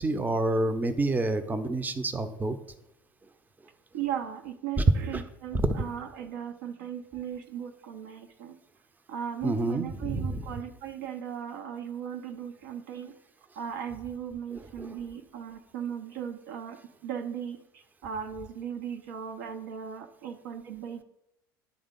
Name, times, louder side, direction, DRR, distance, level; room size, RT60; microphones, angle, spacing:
voice 1, 0.0-2.5 5.1-5.2 5.6-5.7 9.4-10.5 14.5-14.9, right 2 dB, 15° right, 10 dB, 0.6 m, -28 dB
voice 2, 3.9-8.6 9.1-13.1 13.6-16.8 17.0-21.0, right 8 dB, 65° right, 6 dB, 0.7 m, -37 dB
9.9 x 3.6 x 5.2 m, 0.83 s
figure-of-eight pair, 70°, 12 cm